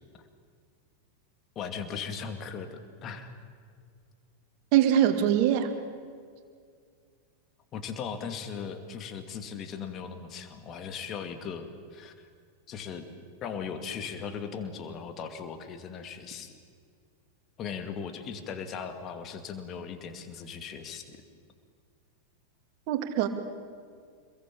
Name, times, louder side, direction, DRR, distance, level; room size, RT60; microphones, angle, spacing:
voice 1, 1.6-3.3 7.7-12.3 12.7-13.1 13.4-16.6 17.6-21.2, left 6 dB, 30° left, 8 dB, 2.5 m, -38 dB
voice 2, 4.7-5.7 22.9-23.3, right 10 dB, 45° right, 7 dB, 2.5 m, -23 dB
26.5 x 22.0 x 8.7 m, 2.2 s
figure-of-eight pair, 90°, 0 cm